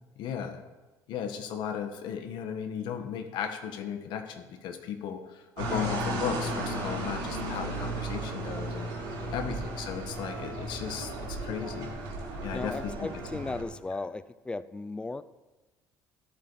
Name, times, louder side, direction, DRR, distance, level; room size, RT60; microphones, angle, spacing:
voice 1, 0.2-0.6 1.1-11.9 12.4-12.9 13.5-13.6 13.9-14.0, left 8 dB, 70° left, 6 dB, 1.4 m, -36 dB
sound 1, 5.6-13.6, right 1 dB, 90° right, 4.6 m, -35 dB
voice 2, 9.2-9.5 12.5-15.2, left 3 dB, 10° left, 15 dB, 0.5 m, -36 dB
13.0 x 11.0 x 4.1 m, 1.2 s
cardioid pair, 130°, 8 cm